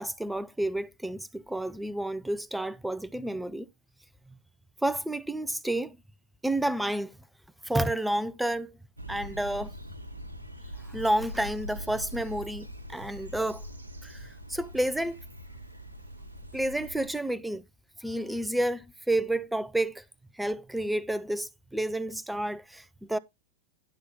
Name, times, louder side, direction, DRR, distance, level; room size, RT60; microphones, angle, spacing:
voice 1, 0.0-3.7 4.3-4.4 4.8-6.0 6.4-7.2 7.6-8.8 9.1-9.7 10.9-13.6 14.0-15.2 16.5-17.6 18.0-20.0 20.3-23.2, right 1 dB, 5° right, 0.7 m, -30 dB
sound 1, 9.0-17.1, equal, 80° right, 1.3 m, -42 dB
11.5 x 4.7 x 5.5 m
figure-of-eight pair, 90°, 0 cm